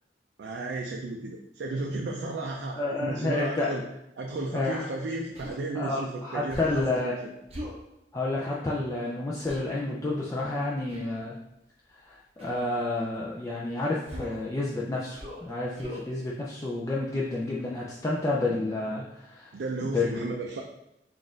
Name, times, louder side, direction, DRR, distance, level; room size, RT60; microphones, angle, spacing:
voice 1, 0.4-3.8 4.2-7.3 19.5-20.6, right 2 dB, 65° right, 1 dB, 0.4 m, -34 dB
voice 2, 2.8-3.7 4.5-4.9 5.7-7.2 8.1-11.4 11.9-19.5 19.9-20.3, left 2 dB, 20° left, -5 dB, 0.4 m, -30 dB
Human voice, 5.3-5.6 6.5-6.9 7.5-7.8 9.5-9.7 10.9-11.2 12.4-12.7 14.1-14.5 15.1-15.5 15.8-16.1, left 1 dB, 35° right, 0.8 m, -40 dB
3.9 x 2.4 x 3.8 m, 0.86 s
head